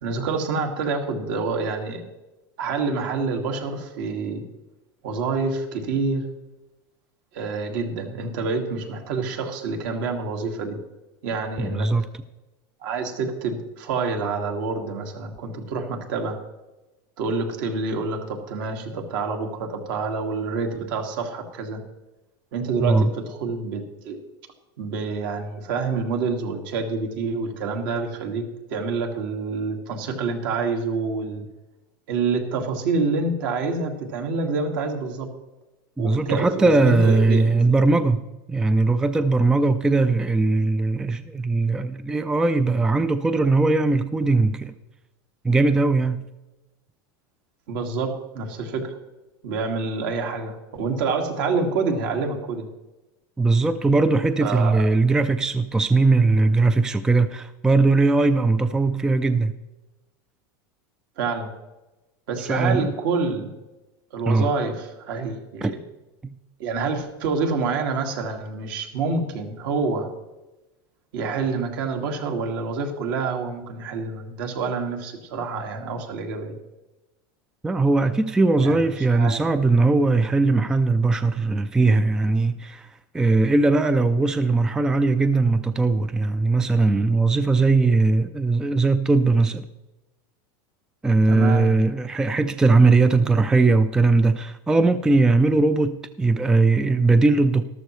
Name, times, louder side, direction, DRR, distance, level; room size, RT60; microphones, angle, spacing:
voice 1, 0.0-2.0 2.6-4.4 5.0-6.3 7.3-10.8 11.2-11.9 12.8-16.4 17.2-21.8 22.5-24.2 24.8-31.4 32.1-35.3 36.0-37.5 47.7-49.0 49.4-52.7 54.4-54.8 61.2-61.5 62.3-63.5 64.1-65.8 66.6-70.1 71.1-76.6 78.6-78.8 79.1-79.4 91.2-91.7, right 4 dB, 65° right, 2.1 m, -27 dB
voice 2, 11.6-12.0 22.8-23.1 36.0-44.7 45.4-46.3 53.4-59.5 62.5-62.9 64.3-64.5 65.6-65.7 66.2-66.4 77.6-89.7 91.0-97.6, right 3 dB, 5° right, 0.3 m, -20 dB
13.5 x 12.5 x 3.1 m
supercardioid pair, 145°, 12 cm